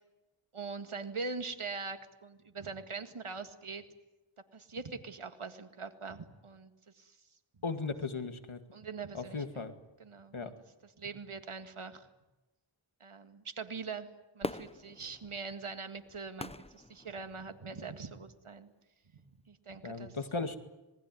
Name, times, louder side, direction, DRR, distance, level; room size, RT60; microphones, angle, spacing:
voice 1, 0.5-3.9 4.5-6.7 7.0-7.2 8.7-9.6 10.0-10.5 11.0-12.1 13.0-14.1 14.4-18.7 19.5-20.2, right 4 dB, 80° right, 9 dB, 2.0 m, -42 dB
voice 2, 7.6-8.6 9.1-9.7 10.3-10.5 19.8-20.6, left 4 dB, 75° left, 8 dB, 2.3 m, -36 dB
Fireworks, 14.4-17.7 18.3-18.4, left 1 dB, 10° left, 0.9 m, -43 dB
26.5 x 20.0 x 9.4 m, 1.0 s
wide cardioid pair, 45°, 49 cm